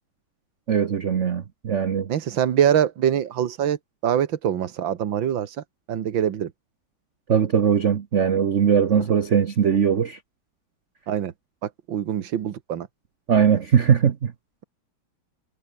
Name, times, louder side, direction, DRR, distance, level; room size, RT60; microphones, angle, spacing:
voice 1, 0.7-2.1 7.3-10.2 13.3-14.3, right 7 dB, 45° right, 1.0 m, -20 dB
voice 2, 2.1-6.5 9.0-9.1 11.1-11.3 11.6-12.9, right 9 dB, 65° right, 2.0 m, -24 dB
omnidirectional pair, 2.4 m